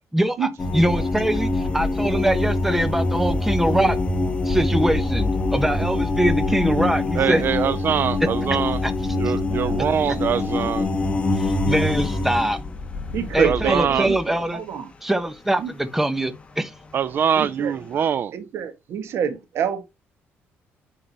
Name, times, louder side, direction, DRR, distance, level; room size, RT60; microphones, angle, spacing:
voice 1, 0.1-3.9 4.4-7.4 8.8-8.9 9.2-9.3 11.4-12.6 13.3-14.6 15.0-16.7, right 1 dB, 5° right, 1.1 m, -23 dB
sound 1, 0.6-14.5 16.3-16.4 17.0-17.4 17.6-18.0, left 2 dB, 25° left, 1.3 m, -24 dB
voice 2, 7.2-8.8 9.1-10.9 13.4-14.1 16.9-18.3, right 8 dB, 50° right, 0.4 m, -23 dB
voice 3, 13.1-14.2 14.5-14.9 15.6-15.7 17.4-17.7 18.3-19.8, right 8 dB, 65° right, 1.8 m, -27 dB
9.8 x 3.9 x 2.9 m
cardioid pair, 110°, 5 cm